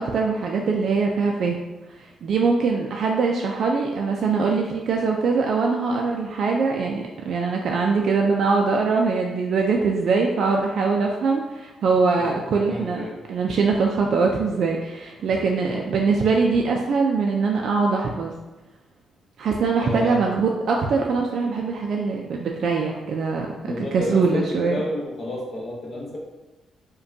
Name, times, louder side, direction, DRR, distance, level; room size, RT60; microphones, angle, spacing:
voice 1, 0.0-1.6 2.0-18.3 19.4-24.8, right 4 dB, 50° right, 1 dB, 0.3 m, -22 dB
voice 2, 12.2-13.2 19.8-20.3 23.6-26.2, left 1 dB, 35° left, -3 dB, 0.8 m, -30 dB
5.0 x 2.2 x 2.6 m, 1.1 s
cardioid pair, 165°, 0 cm